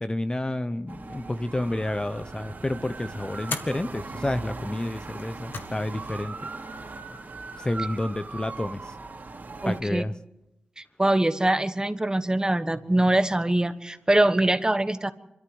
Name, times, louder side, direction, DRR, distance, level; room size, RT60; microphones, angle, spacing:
voice 1, 0.0-6.4 7.6-9.0 9.6-10.1, left 1 dB, 25° left, 11 dB, 0.9 m, -30 dB
sound 1, 0.9-9.8, right 3 dB, 55° right, 3.1 m, -39 dB
sound 2, 3.4-3.8 5.1-5.8 6.1-6.2 7.3-7.8, left 4 dB, 70° left, 1.8 m, -37 dB
voice 2, 9.6-10.0 10.8-15.1, right 1 dB, 20° right, 11 dB, 1.4 m, -23 dB
25.0 x 13.0 x 8.0 m, 0.90 s
cardioid pair, 50°, 4 cm